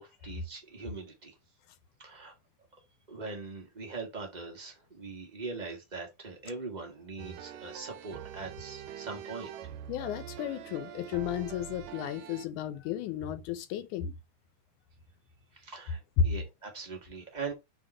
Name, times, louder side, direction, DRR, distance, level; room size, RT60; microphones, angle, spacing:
voice 1, 0.0-1.3 2.0-2.3 3.1-9.5 15.5-17.5, right 4 dB, 55° right, 0.4 m, -41 dB
sound 1, 7.2-12.5, right 10 dB, 85° right, 2.4 m, -44 dB
voice 2, 9.9-14.1 16.2-16.3, left 7 dB, 75° left, 2.2 m, -32 dB
7.2 x 3.7 x 5.1 m
omnidirectional pair, 3.7 m